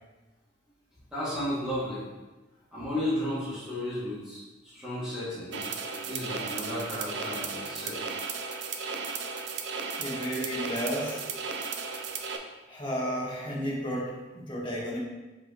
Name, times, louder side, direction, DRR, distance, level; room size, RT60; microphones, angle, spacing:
voice 1, 1.1-2.0 2.7-8.0, left 1 dB, 5° right, -11 dB, 2.1 m, -34 dB
sound 1, 5.5-12.4, right 5 dB, 60° right, 0.5 m, -35 dB
voice 2, 10.0-11.5 12.7-15.0, equal, 25° left, -6 dB, 1.4 m, -33 dB
6.3 x 5.3 x 3.0 m, 1.1 s
head